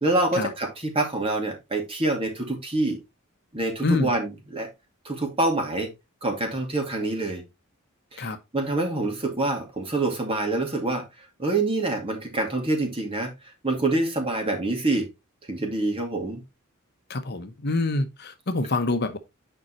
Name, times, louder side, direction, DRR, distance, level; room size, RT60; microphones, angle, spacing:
voice 1, 0.0-3.0 3.5-4.7 5.0-5.9 6.2-7.4 8.1-11.0 11.4-13.3 13.6-15.1 15.5-16.4, right 2 dB, 25° right, 2.5 m, -26 dB
voice 2, 17.1-19.2, left 2 dB, 50° left, 0.9 m, -26 dB
9.3 x 5.4 x 3.0 m
head